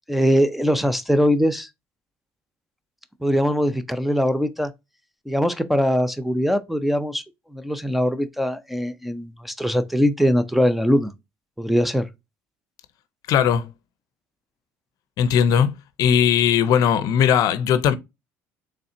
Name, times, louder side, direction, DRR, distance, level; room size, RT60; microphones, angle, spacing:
voice 1, 0.1-1.7 3.2-4.7 5.3-7.2 7.5-11.1 11.6-12.1, equal, ahead, 0.5 m, -21 dB
voice 2, 13.3-13.7 15.2-15.7 16.0-18.0, left 8 dB, 65° left, 0.5 m, -18 dB
4.1 x 3.2 x 2.6 m
supercardioid pair, 100°, 7 cm